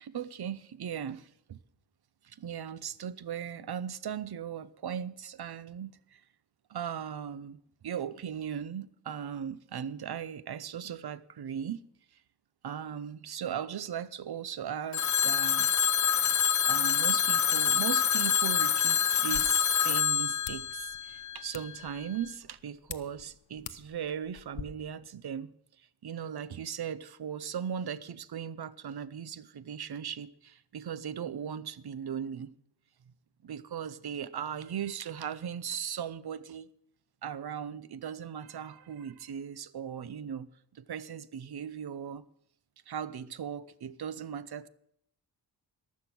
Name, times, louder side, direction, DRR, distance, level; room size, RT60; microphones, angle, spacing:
voice 1, 0.0-1.6 2.2-6.2 6.7-11.8 12.6-15.7 16.7-25.5 26.0-32.5 33.4-36.7 37.2-42.3 42.9-44.7, right 8 dB, 60° right, 0.7 m, -38 dB
Telephone, 14.9-21.7, left 8 dB, 45° left, 0.5 m, -26 dB
sound 1, 19.1-24.6, left 9 dB, 75° left, 0.9 m, -48 dB
15.0 x 12.0 x 6.0 m
wide cardioid pair, 180°, 43 cm